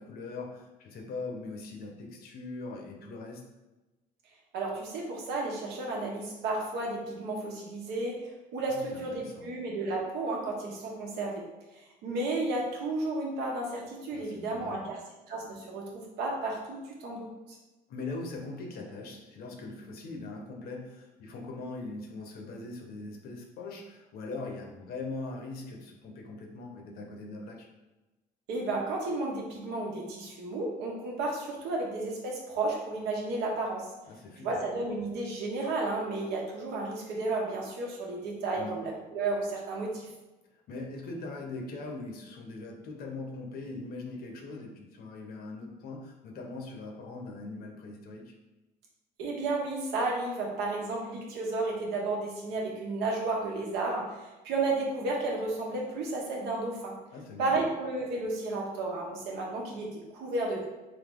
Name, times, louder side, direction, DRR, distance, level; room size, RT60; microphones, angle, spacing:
voice 1, 0.0-3.5 8.7-9.5 14.1-14.9 17.9-27.7 34.1-34.6 38.6-38.8 40.7-48.3 57.1-57.7, left 3 dB, 65° left, 2 dB, 0.9 m, -41 dB
voice 2, 4.5-11.4 11.7-15.0 15.3-15.9 16.2-17.3 28.5-33.8 34.4-40.1 49.2-56.9 57.4-60.7, right 2 dB, 85° right, -2 dB, 1.1 m, -32 dB
3.9 x 2.8 x 3.7 m, 1.1 s
cardioid pair, 110°, 17 cm